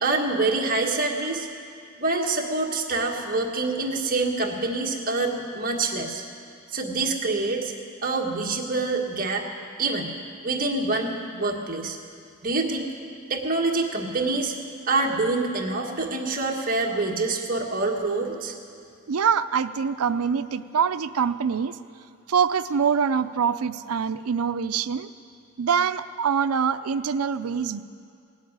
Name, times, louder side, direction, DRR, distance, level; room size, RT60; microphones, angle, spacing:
voice 1, 0.0-1.5 2.0-6.2 6.7-7.7 8.0-9.5 9.8-10.1 10.4-12.0 12.4-12.9 13.3-14.5 14.9-18.5, right 3 dB, 40° right, 0 dB, 1.6 m, -26 dB
voice 2, 19.1-21.8 22.3-25.1 25.6-27.8, right 6 dB, 90° right, 13 dB, 0.5 m, -24 dB
18.0 x 8.1 x 9.5 m, 2.3 s
head